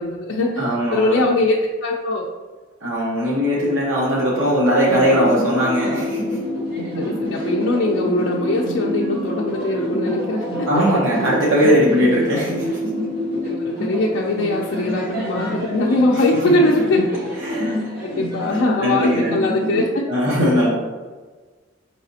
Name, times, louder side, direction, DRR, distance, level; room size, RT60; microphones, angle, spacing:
voice 1, 0.0-2.3 6.9-10.7 13.4-17.0 18.0-20.0, left 2 dB, 65° left, -2 dB, 0.4 m, -21 dB
voice 2, 0.6-1.2 2.8-6.2 10.6-12.7 16.4-16.5 17.4-17.9 18.1-19.4 20.1-20.7, equal, 75° right, -7 dB, 1.0 m, -19 dB
sound 1, 4.8-19.8, equal, 50° right, 1.3 m, -27 dB
4.9 x 3.3 x 2.7 m, 1.3 s
head